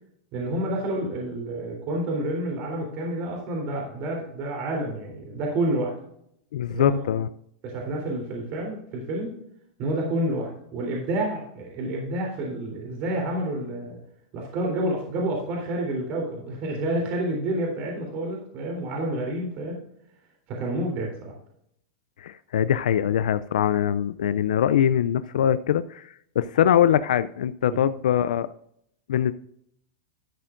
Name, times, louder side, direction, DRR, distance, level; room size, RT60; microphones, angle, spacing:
voice 1, 0.3-5.9 6.7-7.0 7.6-9.3 9.8-14.0 14.3-19.8 20.5-21.4 27.6-27.8, right 1 dB, 45° right, 0 dB, 3.5 m, -29 dB
voice 2, 6.5-7.3 22.2-28.5 29.1-29.3, left 10 dB, 85° left, 14 dB, 0.4 m, -22 dB
12.5 x 8.8 x 2.5 m, 0.72 s
supercardioid pair, 130°, 4 cm